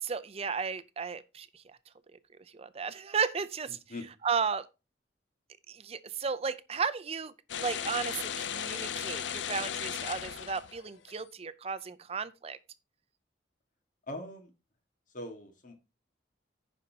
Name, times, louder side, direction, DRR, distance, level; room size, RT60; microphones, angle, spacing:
voice 1, 0.0-1.8 2.5-3.8 4.2-4.7 5.7-12.6, right 6 dB, 35° right, 0.5 m, -34 dB
sound 1, 7.5-11.1, left 9 dB, 80° left, 0.5 m, -36 dB
voice 2, 14.1-14.5 15.1-15.7, left 1 dB, 45° left, 1.7 m, -41 dB
15.5 x 5.3 x 2.8 m
head